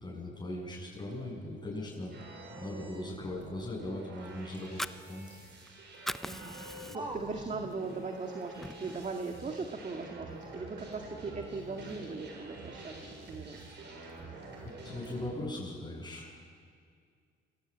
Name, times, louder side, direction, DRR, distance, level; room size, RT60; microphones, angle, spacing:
voice 1, 0.0-4.8 5.1-5.3 14.6-16.4, left 1 dB, 20° left, -4 dB, 7.8 m, -39 dB
sound 1, 1.0-8.2 8.5-15.7, right 2 dB, 25° right, 6.3 m, -55 dB
sound 2, 2.1-15.5, right 2 dB, 65° right, 7.0 m, -48 dB
Fire, 4.5-5.7 5.9-7.3 7.7-7.8 8.2-9.2, equal, ahead, 0.5 m, -40 dB
voice 2, 6.2-13.6, right 4 dB, 40° right, 3 dB, 2.0 m, -39 dB
26.5 x 19.5 x 8.7 m, 2.1 s
cardioid pair, 90°, 20 cm